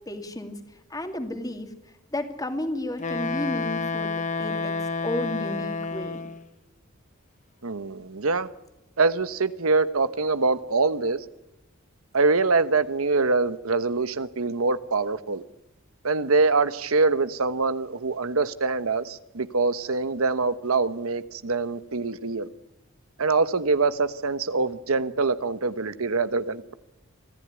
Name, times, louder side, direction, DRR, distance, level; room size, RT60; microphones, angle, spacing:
voice 1, 0.1-0.5 0.9-1.7 2.1-4.7 5.0-6.2, left 1 dB, 15° left, 2.4 m, -32 dB
Wind instrument woodwind instrument, 3.0-6.5, left 4 dB, 35° left, 1.2 m, -29 dB
voice 2, 7.6-8.5 9.0-11.2 12.1-15.4 16.0-22.5 23.2-26.7, right 3 dB, 85° right, 1.2 m, -24 dB
25.5 x 14.5 x 9.7 m
head